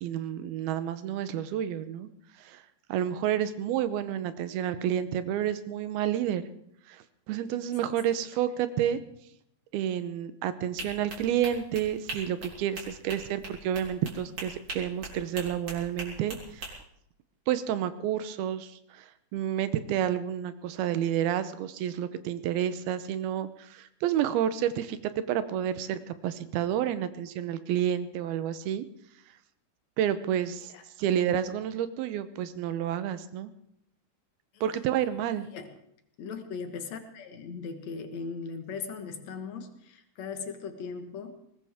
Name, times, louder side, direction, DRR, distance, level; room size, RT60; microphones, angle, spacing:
voice 1, 0.0-2.1 2.4-2.6 2.9-6.5 6.9-9.0 9.7-16.8 17.5-19.1 19.3-28.9 30.0-30.7 31.0-33.5 34.6-35.5, right 10 dB, 85° right, 12 dB, 2.8 m, -30 dB
sound 1, 10.8-16.7, right 2 dB, 35° right, 4.3 m, -40 dB
voice 2, 36.2-41.4, left 5 dB, 55° left, 7 dB, 2.2 m, -38 dB
20.5 x 19.0 x 3.6 m, 0.72 s
omnidirectional pair, 4.3 m